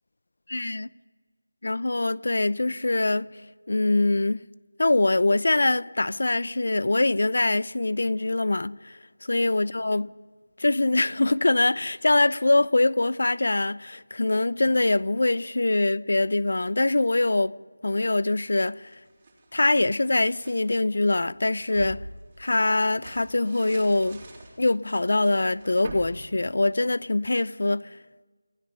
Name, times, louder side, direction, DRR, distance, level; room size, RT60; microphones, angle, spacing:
voice 1, 0.5-0.9 1.6-3.3 3.7-4.4 4.8-10.1 10.6-17.5 17.8-19.0 19.5-22.0 22.4-24.2 24.6-28.0, left 2 dB, 55° left, 0.6 m, -23 dB
sound 1, 18.7-20.6 21.1-27.2, right 2 dB, 15° right, 3.3 m, -45 dB
29.5 x 16.5 x 5.5 m
figure-of-eight pair, 175°, 0 cm